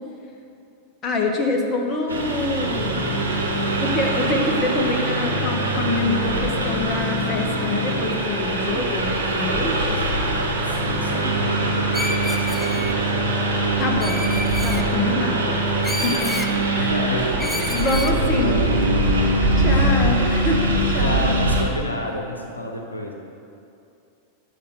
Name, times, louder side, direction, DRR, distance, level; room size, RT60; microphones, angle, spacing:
voice 1, 1.0-3.0 3.8-10.0 13.8-16.3 16.7-16.9 17.7-18.6 19.6-21.4, left 2 dB, 30° left, 2 dB, 1.3 m, -26 dB
Engine, 2.1-21.6, right 1 dB, 75° right, 1.3 m, -22 dB
voice 2, 10.7-13.4 16.8-17.9 18.2-19.1 19.7-20.2 20.5-23.1, left 1 dB, 80° left, 1 dB, 1.0 m, -30 dB
Screech, 11.9-12.9 14.0-14.8 15.8-16.5 17.4-18.2, left 1 dB, 10° left, 0.7 m, -30 dB
9.9 x 6.7 x 6.6 m, 2.6 s
figure-of-eight pair, 90°, 0 cm